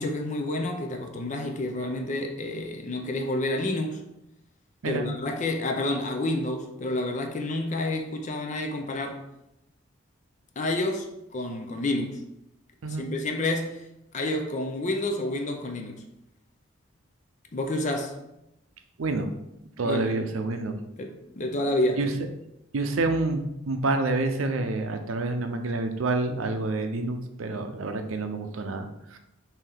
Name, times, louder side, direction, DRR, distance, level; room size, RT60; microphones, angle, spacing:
voice 1, 0.0-4.0 4.9-9.2 10.6-11.1 11.3-12.2 13.0-13.8 14.1-16.0 17.5-18.2 19.8-20.1 21.0-22.0, left 1 dB, 35° left, 0.5 m, -29 dB
voice 2, 19.8-20.8 22.0-22.1 22.7-29.2, right 2 dB, 85° right, 0.6 m, -28 dB
5.5 x 2.8 x 3.4 m
head